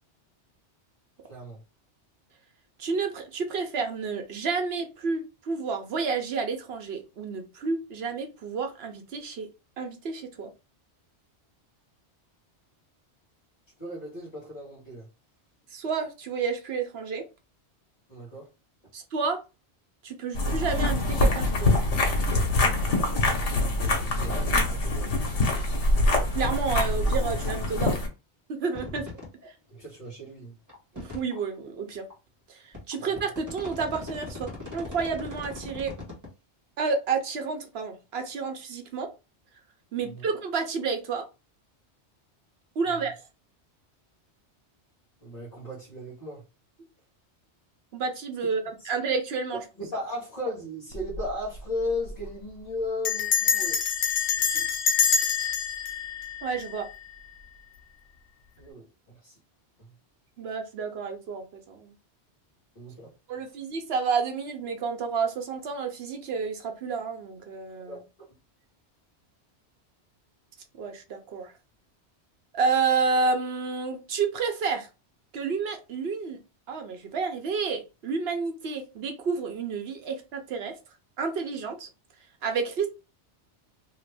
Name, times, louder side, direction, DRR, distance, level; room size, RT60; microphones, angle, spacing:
voice 1, 1.3-1.6 13.8-15.1 18.1-18.5 23.8-25.1 28.9-29.0 29.7-30.5 40.0-40.3 43.0-43.1 45.2-46.4 49.8-53.8 54.4-54.7 58.6-58.9 59.2-59.3 62.7-63.1 67.9-68.3, left 1 dB, 40° left, 1.3 m, -36 dB
voice 2, 2.8-9.5 9.8-10.5 15.7-17.2 18.9-19.4 20.0-21.7 26.3-28.0 28.5-29.1 30.9-32.0 32.5-35.9 36.8-39.1 39.9-41.3 42.8-43.1 47.9-49.6 56.4-56.9 60.4-61.9 63.3-68.0 70.8-71.5 72.5-74.9 75.3-76.4 76.7-80.7 81.2-81.9 82.4-82.9, right 5 dB, 65° right, 0.9 m, -30 dB
sound 1, 20.4-28.1, left 2 dB, 85° left, 1.2 m, -24 dB
sound 2, 28.7-29.3 29.8-29.9 30.7-31.4 32.1-32.2 32.7-36.3, left 3 dB, 15° right, 1.1 m, -39 dB
Bell, 50.9-51.3 51.6-51.7 51.9-52.3 53.0-57.1, left 7 dB, 60° left, 0.9 m, -26 dB
2.8 x 2.5 x 3.3 m
omnidirectional pair, 1.2 m